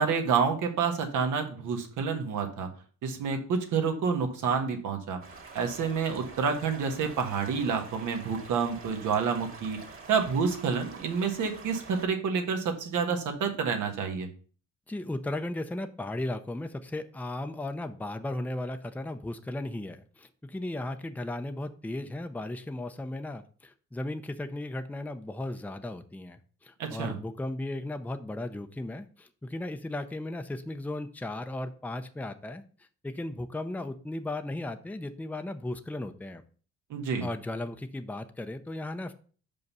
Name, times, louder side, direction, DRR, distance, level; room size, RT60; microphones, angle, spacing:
voice 1, 0.0-2.7 3.0-5.2 5.5-9.8 10.1-14.3 26.8-27.2 36.9-37.3, right 6 dB, 80° right, 4 dB, 1.5 m, -28 dB
sound 1, 5.2-12.1, right 4 dB, 45° right, 2.1 m, -47 dB
voice 2, 14.9-32.6 33.0-36.4 37.2-39.1, left 1 dB, 5° left, 8 dB, 0.6 m, -36 dB
5.5 x 5.4 x 5.4 m, 0.41 s
cardioid pair, 90°, 30 cm